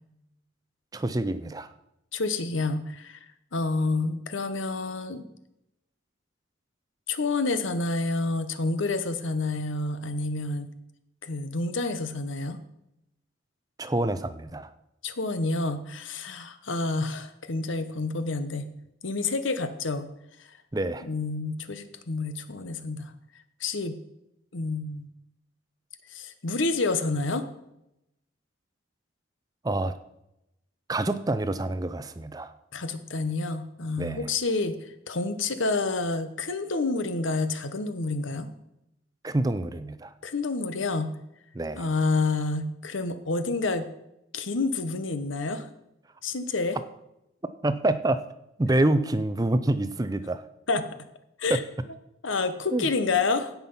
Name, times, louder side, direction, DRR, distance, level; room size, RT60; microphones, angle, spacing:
voice 1, 0.9-1.7 13.8-14.7 20.7-21.1 29.6-29.9 30.9-32.5 34.0-34.3 39.2-40.1 41.5-41.9 47.6-48.2 48.6-50.4 51.5-51.6 52.7-52.8, right 2 dB, 20° right, 12 dB, 0.5 m, -26 dB
voice 2, 2.1-5.2 7.1-10.7 11.2-12.6 15.0-18.7 19.0-20.1 20.4-20.6 21.0-23.1 23.6-24.0 24.5-25.1 26.0-27.4 32.7-38.5 40.2-41.1 41.8-43.9 44.3-45.7 46.2-46.8 50.7-50.9 51.4-51.6 52.2-53.5, left 3 dB, 75° left, 10 dB, 1.0 m, -29 dB
16.0 x 5.9 x 5.6 m, 0.84 s
head